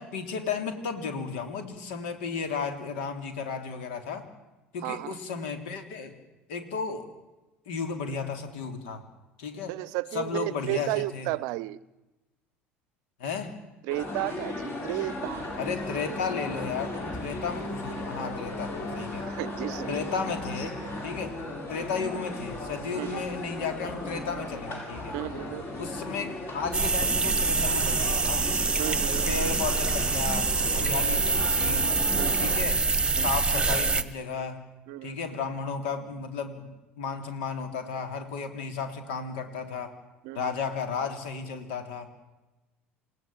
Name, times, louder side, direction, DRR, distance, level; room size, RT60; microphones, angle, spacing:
voice 1, 0.0-4.2 4.7-6.1 6.5-7.1 7.6-9.0 9.4-9.8 10.1-11.3 13.2-13.6 15.6-19.3 19.9-21.3 21.7-25.1 25.8-28.5 29.2-31.9 32.4-32.8 33.2-34.6 35.0-39.9 40.3-42.1, left 5 dB, 65° left, 7 dB, 3.3 m, -34 dB
voice 2, 4.8-5.2 9.7-11.8 13.8-15.5 19.2-19.9 22.9-23.2 25.1-25.6 28.8-29.3 32.2-32.5 33.2-33.4 34.9-35.2 40.2-40.5, right 18 dB, 55° right, 21 dB, 0.7 m, -33 dB
sound 1, 13.9-32.6, left 2 dB, 35° left, 7.9 m, -36 dB
sound 2, 26.7-34.0, right 4 dB, 15° right, 1.6 m, -25 dB
28.5 x 17.5 x 7.5 m, 1.1 s
figure-of-eight pair, 65°, 7 cm